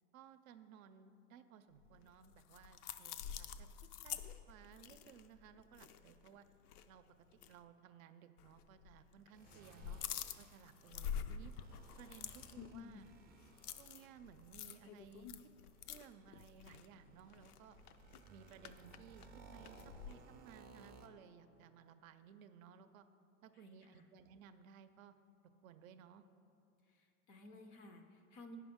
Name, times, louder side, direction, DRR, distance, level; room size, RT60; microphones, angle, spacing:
voice 1, 0.1-3.7 4.0-4.2 4.5-6.5 6.9-7.0 7.3-10.0 10.4-11.5 12.0-13.1 13.8-15.3 15.9-17.8 18.3-23.1 23.4-25.1 25.6-26.2, right 8 dB, 65° right, 10 dB, 0.6 m, -59 dB
sound 1, 1.9-6.4 6.6-6.8 7.3-7.5 8.4-9.0 9.3-20.1, left 8 dB, 75° left, 0.6 m, -48 dB
sound 2, 9.3-21.1, right 4 dB, 20° right, 0.5 m, -61 dB
voice 2, 23.5-24.1 26.9-28.6, left 1 dB, 30° left, 5 dB, 0.4 m, -57 dB
9.1 x 5.9 x 3.5 m, 2.6 s
hypercardioid pair, 120°, 45 cm